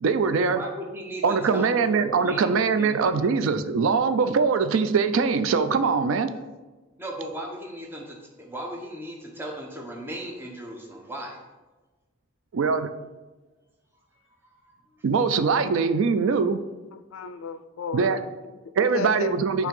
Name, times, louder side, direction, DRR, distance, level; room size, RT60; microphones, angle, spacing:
voice 1, 0.0-0.6 1.2-6.3 12.5-12.9 15.0-16.6 17.9-18.2 18.8-19.7, right 5 dB, 75° right, 10 dB, 0.4 m, -22 dB
voice 2, 0.5-3.3 7.0-11.4, right 1 dB, 10° right, -1 dB, 0.8 m, -37 dB
voice 3, 16.9-18.6 18.9-19.7, left 6 dB, 80° left, 11 dB, 0.4 m, -34 dB
7.3 x 2.8 x 5.3 m, 1.2 s
head